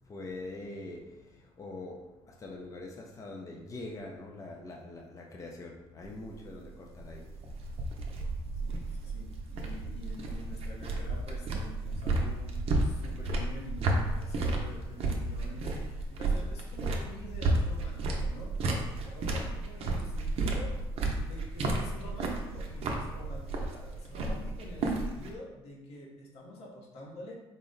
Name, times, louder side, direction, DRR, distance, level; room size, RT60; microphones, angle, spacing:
voice 1, 0.0-7.4 8.1-8.2, left 2 dB, 30° left, 0 dB, 0.5 m, -44 dB
sound 1, 6.0-25.3, right 2 dB, 65° right, 0.6 m, -32 dB
voice 2, 8.6-18.6 19.0-20.8 21.2-27.4, left 1 dB, 75° left, -2 dB, 0.9 m, -47 dB
3.9 x 2.1 x 3.8 m, 1.1 s
cardioid pair, 90°, 11 cm